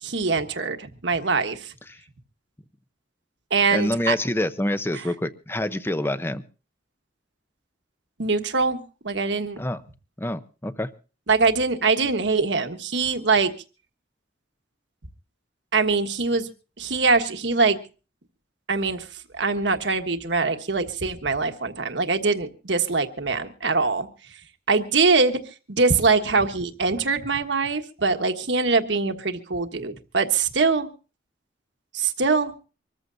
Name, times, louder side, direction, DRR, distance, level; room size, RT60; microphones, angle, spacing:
voice 1, 0.0-1.7 3.5-4.1 8.2-9.6 11.3-13.5 15.7-16.5 16.8-17.8 18.7-19.1 19.3-24.1 24.7-25.4 25.7-30.9 31.9-32.5, right 4 dB, 70° right, 7 dB, 1.4 m, -23 dB
voice 2, 3.7-6.4 9.6-9.8 10.2-10.9, left 1 dB, 10° left, 12 dB, 0.7 m, -26 dB
25.5 x 14.0 x 2.7 m, 0.35 s
head